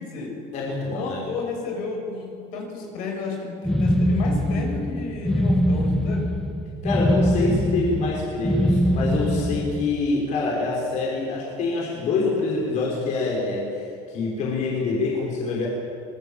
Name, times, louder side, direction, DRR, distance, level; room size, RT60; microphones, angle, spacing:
voice 1, 0.0-0.4 0.9-6.3, left 4 dB, 70° left, 1 dB, 6.9 m, -32 dB
voice 2, 0.5-1.2 6.8-15.7, left 3 dB, 50° left, -3 dB, 5.7 m, -26 dB
sound 1, 3.6-10.0, equal, 5° left, 1.3 m, -23 dB
25.0 x 20.0 x 7.4 m, 2.5 s
cardioid pair, 135°, 15 cm